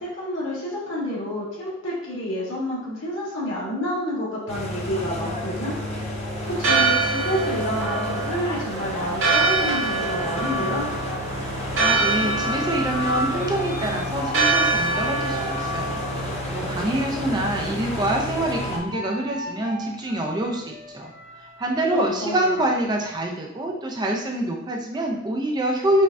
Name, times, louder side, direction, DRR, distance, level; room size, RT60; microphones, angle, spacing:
voice 1, 0.0-6.1 6.5-10.9 21.9-22.6, left 1 dB, 75° left, -7 dB, 1.5 m, -29 dB
sound 1, 4.5-18.8, left 1 dB, 30° left, 0.6 m, -31 dB
Church bell, 6.4-18.0, right 3 dB, 75° right, 0.9 m, -26 dB
sound 2, 11.7-17.0 17.4-22.7, equal, 50° left, 1.1 m, -37 dB
voice 2, 11.8-21.1 21.6-26.0, right 1 dB, 20° right, 1 dB, 0.4 m, -26 dB
5.2 x 2.3 x 2.5 m, 0.89 s
head